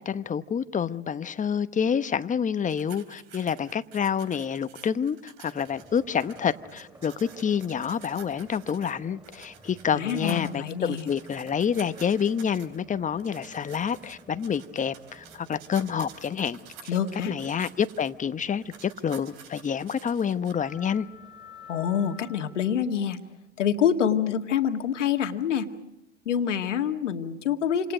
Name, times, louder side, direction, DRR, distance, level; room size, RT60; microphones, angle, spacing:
voice 1, 0.0-16.9 17.3-21.1, left 7 dB, 20° left, 1.0 m, -28 dB
sound 1, 2.7-9.0 9.2-12.8 13.2-18.1 18.6-20.5, right 7 dB, 60° right, 3.4 m, -50 dB
sound 2, 5.7-22.8, equal, 15° right, 7.3 m, -52 dB
voice 2, 9.9-11.1 16.9-17.3 21.7-23.2 23.6-25.7 26.3-27.9, left 8 dB, 80° left, 2.0 m, -26 dB
28.5 x 27.0 x 5.1 m
hypercardioid pair, 85°, 36 cm